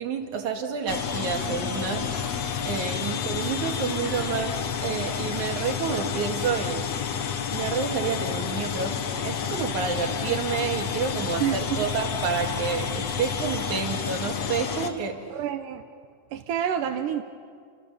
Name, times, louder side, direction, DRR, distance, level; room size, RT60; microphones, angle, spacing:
voice 1, 0.0-2.1 2.7-4.6 4.8-6.8 7.5-15.2, right 6 dB, 70° right, 3 dB, 3.4 m, -29 dB
sound 1, 0.9-14.9, left 7 dB, 60° left, 2.3 m, -30 dB
sound 2, 1.4-6.6, left 2 dB, 30° left, 2.6 m, -47 dB
voice 2, 11.4-11.8 15.3-15.8 16.3-17.2, right 10 dB, 90° right, 5 dB, 2.6 m, -28 dB
28.5 x 26.5 x 7.2 m, 2.1 s
omnidirectional pair, 3.6 m